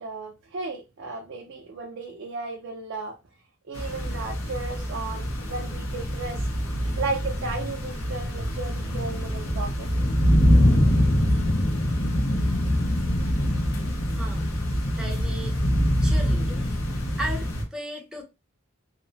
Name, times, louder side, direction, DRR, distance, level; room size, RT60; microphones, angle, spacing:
voice 1, 0.0-3.2 3.7-6.5 7.0-9.9, right 3 dB, 60° right, 0.5 m, -34 dB
sound 1, 3.7-17.6, equal, 90° left, 0.8 m, -24 dB
voice 2, 14.1-14.5 15.0-15.6 16.0-16.7 17.2-18.2, right 1 dB, 5° right, 0.5 m, -35 dB
2.8 x 2.0 x 2.6 m
head